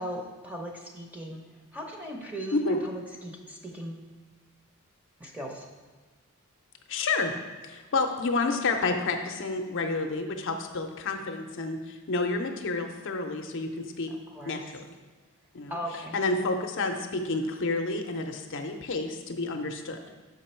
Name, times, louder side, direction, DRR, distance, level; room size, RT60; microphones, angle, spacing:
voice 1, 0.0-1.4 1.7-4.1 5.2-5.7 14.1-14.6 15.7-16.2, equal, 5° right, 0 dB, 0.8 m, -38 dB
voice 2, 6.9-7.4 7.6-14.1 14.5-14.9 15.5-15.8 16.1-20.1, left 3 dB, 60° left, 4 dB, 0.6 m, -30 dB
6.2 x 5.2 x 4.4 m, 1.4 s
head